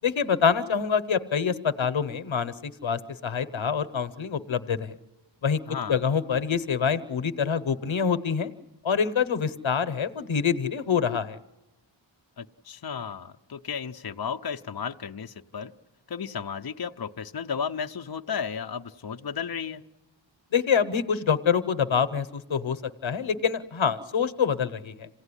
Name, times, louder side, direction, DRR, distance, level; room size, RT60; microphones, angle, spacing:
voice 1, 0.0-4.9 5.4-5.6 5.9-8.5 8.8-11.4 20.5-25.1, left 6 dB, 90° left, 12 dB, 1.0 m, -26 dB
voice 2, 5.7-6.0 12.4-15.7 16.1-19.8, left 6 dB, 55° left, 6 dB, 0.8 m, -34 dB
27.0 x 16.5 x 9.9 m, 0.95 s
wide cardioid pair, 65°, 45 cm